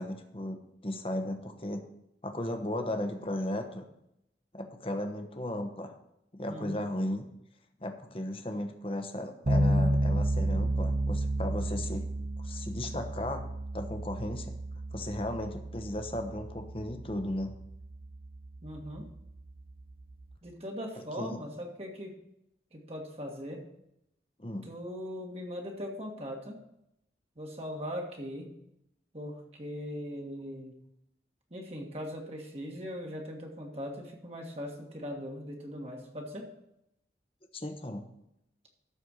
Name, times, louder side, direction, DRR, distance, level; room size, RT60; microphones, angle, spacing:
voice 1, 0.0-1.9 2.2-3.9 4.5-5.9 6.3-7.3 7.8-12.1 12.4-13.5 13.7-14.6 14.9-17.5 21.2-21.4 24.4-24.7 37.5-38.1, left 1 dB, 30° left, 6 dB, 1.0 m, -35 dB
voice 2, 6.5-6.8 18.6-19.1 20.4-22.2 22.7-23.6 24.6-26.6 27.4-28.5 29.1-30.7 31.5-36.5, equal, 35° right, 1 dB, 1.6 m, -40 dB
sound 1, 9.5-20.3, right 1 dB, 55° right, 0.8 m, -32 dB
13.0 x 4.4 x 6.4 m, 0.81 s
head